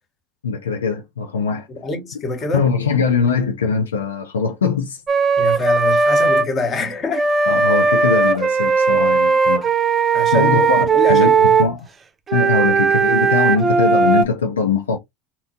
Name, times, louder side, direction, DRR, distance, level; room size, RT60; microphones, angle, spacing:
voice 1, 0.4-1.7 2.5-5.0 7.5-9.7 10.3-11.9 12.3-15.0, left 5 dB, 85° left, 0.4 m, -21 dB
voice 2, 1.7-2.7 5.4-7.3 10.1-11.6, left 2 dB, 35° left, 0.9 m, -25 dB
Wind instrument woodwind instrument, 5.1-6.5 7.1-11.7 12.3-14.2, right 4 dB, 25° right, 0.4 m, -17 dB
2.7 x 2.1 x 2.6 m
hypercardioid pair, 80°, 0 cm